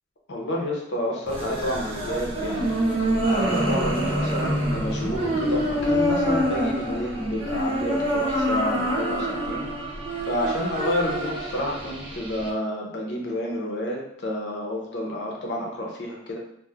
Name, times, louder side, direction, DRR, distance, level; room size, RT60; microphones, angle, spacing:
voice 1, 0.3-2.8 3.3-9.7 10.2-16.4, equal, 60° left, -1 dB, 0.7 m, -29 dB
sound 1, 1.3-12.5, equal, 30° right, 0.6 m, -26 dB
3.1 x 2.5 x 2.4 m, 0.74 s
head